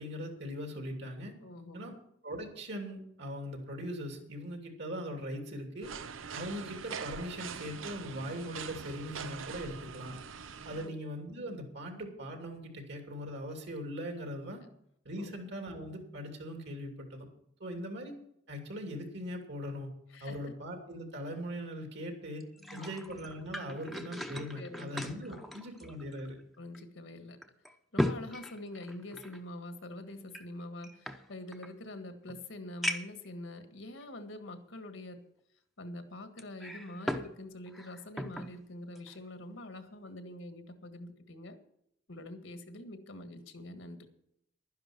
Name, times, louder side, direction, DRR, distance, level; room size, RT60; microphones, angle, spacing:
voice 1, 0.0-1.3 1.7-1.9 2.2-5.9 6.3-10.2 10.6-14.6 15.0-17.3 17.6-18.1 18.5-19.9 20.2-22.5 22.7-26.4, equal, 60° right, 4 dB, 2.8 m, -40 dB
voice 2, 1.4-1.9 10.7-11.0 15.2-15.3 20.1-20.4 22.6-22.9 24.6-25.0 25.3-25.6 26.6-27.4 27.9-35.2 35.8-41.6 42.1-44.1, left 1 dB, 75° left, 8 dB, 1.7 m, -45 dB
sound 1, 5.8-10.9, right 6 dB, 90° right, 0.7 m, -43 dB
sound 2, 22.4-26.4 26.7-26.8 27.4-29.4 30.3-31.7 32.3-32.4 32.8-33.3 34.0-34.1 36.4-37.3 37.7-38.5 39.0-39.2, equal, ahead, 0.8 m, -38 dB
11.5 x 10.5 x 6.1 m, 0.74 s
head